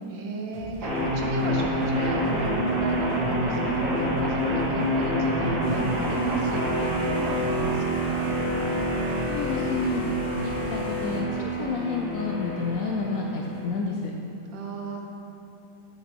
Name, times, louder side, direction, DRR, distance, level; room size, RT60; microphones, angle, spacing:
voice 1, 0.1-8.3 14.5-15.0, right 3 dB, 80° right, 1 dB, 1.6 m, -35 dB
sound 1, 0.5-10.8, right 2 dB, 45° right, 0.8 m, -42 dB
sound 2, 0.8-13.8, equal, 60° right, 1.7 m, -27 dB
sound 3, 5.6-11.2, equal, 45° left, 0.9 m, -39 dB
voice 2, 9.3-10.0 10.4-14.1, left 4 dB, 70° left, 0 dB, 0.8 m, -30 dB
9.3 x 6.0 x 3.5 m, 2.7 s
omnidirectional pair, 2.1 m